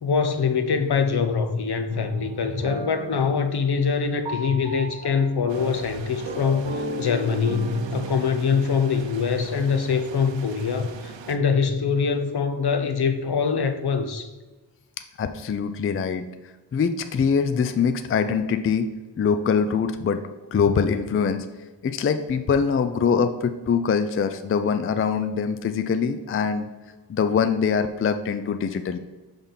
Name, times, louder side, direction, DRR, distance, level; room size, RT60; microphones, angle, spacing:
voice 1, 0.0-14.3, left 5 dB, 65° left, 7 dB, 0.7 m, -24 dB
sound 1, 1.9-8.1, right 1 dB, 75° right, 1.0 m, -35 dB
sound 2, 5.5-11.4, right 6 dB, 90° right, 0.6 m, -43 dB
voice 2, 15.2-16.2 16.7-18.9 19.2-20.2 20.5-21.5 21.8-26.7 27.1-29.0, left 6 dB, 35° left, 9 dB, 0.4 m, -23 dB
5.5 x 3.5 x 5.7 m, 1.2 s
wide cardioid pair, 60°, 43 cm